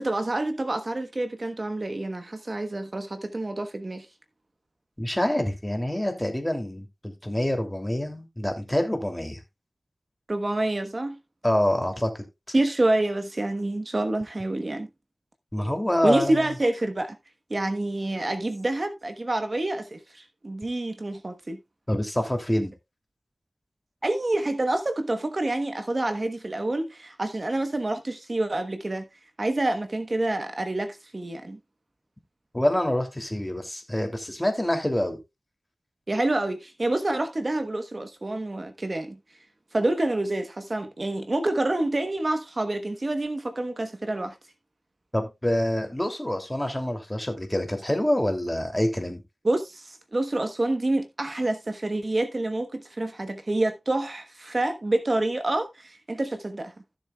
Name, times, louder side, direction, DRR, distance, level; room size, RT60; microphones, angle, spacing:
voice 1, 0.0-4.1 10.3-11.2 12.5-14.9 15.6-15.7 16.0-17.2 17.5-21.6 24.0-29.1 29.4-31.6 36.1-39.2 39.7-44.4 49.4-56.7, right 2 dB, 45° right, 1.1 m, -27 dB
voice 2, 5.0-9.4 11.4-12.2 15.5-16.5 21.9-22.7 32.5-35.2 45.1-49.2, left 1 dB, 15° left, 2.7 m, -26 dB
15.5 x 6.9 x 2.3 m
wide cardioid pair, 60°, 0 cm